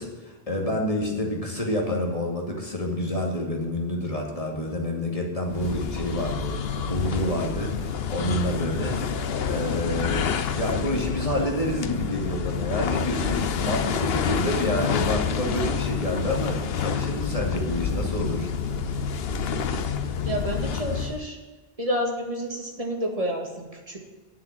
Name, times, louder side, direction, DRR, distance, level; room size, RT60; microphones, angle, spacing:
voice 1, 0.0-18.5, left 1 dB, 35° left, 0 dB, 2.5 m, -28 dB
sound 1, 5.5-21.3, left 6 dB, 70° left, 1.0 m, -28 dB
voice 2, 20.2-21.4 21.8-24.0, equal, 35° right, 1 dB, 2.1 m, -29 dB
9.4 x 7.5 x 8.8 m, 1.3 s
omnidirectional pair, 1.0 m